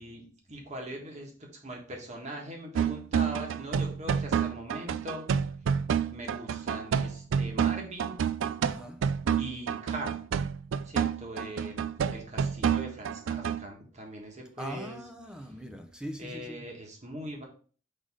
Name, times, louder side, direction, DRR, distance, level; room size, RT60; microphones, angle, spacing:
voice 1, 0.0-5.3 6.1-8.2 9.3-10.2 10.8-15.0 16.2-17.4, right 1 dB, 35° right, 1.5 m, -41 dB
sound 1, 2.8-13.6, right 7 dB, 65° right, 0.3 m, -29 dB
voice 2, 8.7-9.0 14.6-16.6, equal, 5° right, 0.7 m, -41 dB
5.5 x 3.6 x 4.8 m
head